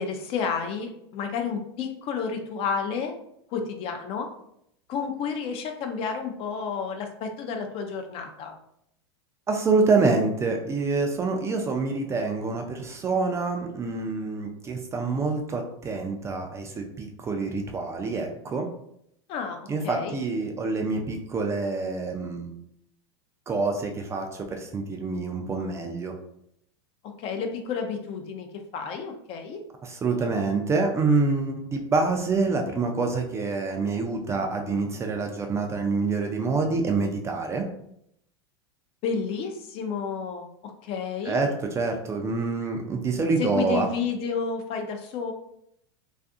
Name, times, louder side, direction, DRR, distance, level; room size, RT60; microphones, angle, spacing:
voice 1, 0.0-3.2 3.5-4.3 4.9-8.5 19.3-20.2 27.2-29.6 39.0-41.5 43.4-45.3, left 6 dB, 40° left, 4 dB, 0.5 m, -31 dB
voice 2, 9.5-18.7 19.7-22.6 23.5-26.1 29.8-37.7 41.3-43.9, right 3 dB, 20° right, 3 dB, 0.3 m, -26 dB
2.5 x 2.4 x 2.4 m, 0.73 s
hypercardioid pair, 110°, 14 cm